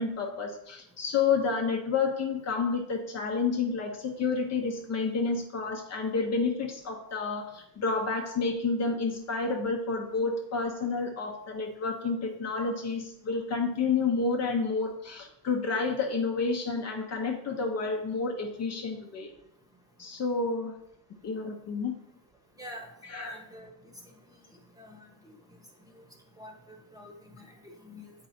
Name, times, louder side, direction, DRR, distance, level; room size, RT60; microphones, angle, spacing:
voice 1, 0.0-19.3 20.0-20.7 21.2-21.9 23.1-23.4, left 4 dB, 35° left, 2 dB, 0.9 m, -30 dB
voice 2, 22.6-22.9 23.2-23.7 24.8-25.3 26.4-28.1, left 1 dB, 10° right, 2 dB, 1.2 m, -47 dB
8.2 x 4.7 x 4.2 m, 0.78 s
cardioid pair, 135°, 46 cm